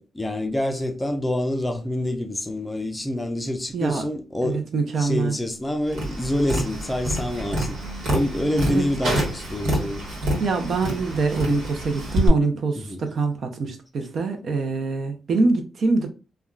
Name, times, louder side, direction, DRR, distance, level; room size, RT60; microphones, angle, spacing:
voice 1, 0.0-4.6 5.0-7.8 8.1-10.1 12.8-13.0, left 1 dB, 10° left, 0.5 m, -27 dB
voice 2, 3.7-4.0 4.4-5.3 8.7-8.8 10.4-16.1, right 4 dB, 55° right, 0.6 m, -24 dB
Tap, 5.9-12.3, right 1 dB, 85° right, 1.2 m, -27 dB
3.5 x 2.3 x 2.3 m
cardioid pair, 115°, 0 cm